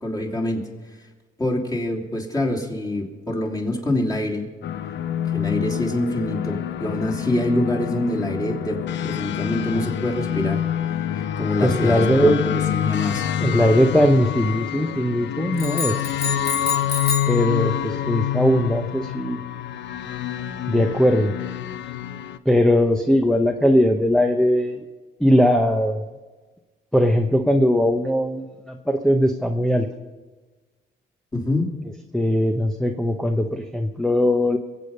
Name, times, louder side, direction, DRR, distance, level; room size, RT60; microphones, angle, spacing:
voice 1, 0.0-0.6 1.4-4.5 5.3-10.6 11.1-13.3 31.3-31.7, left 1 dB, 20° left, -1 dB, 2.9 m, -25 dB
sound 1, 4.6-22.4, left 10 dB, 65° left, 0.7 m, -27 dB
voice 2, 11.6-12.4 13.4-16.1 17.3-19.4 20.7-21.3 22.5-24.8 25.2-26.0 26.9-29.9 32.1-34.6, equal, 5° left, 3 dB, 0.9 m, -19 dB
sound 2, 15.6-17.4, left 4 dB, 50° left, 2.4 m, -28 dB
23.0 x 8.4 x 5.4 m, 1.3 s
cardioid pair, 90°, 20 cm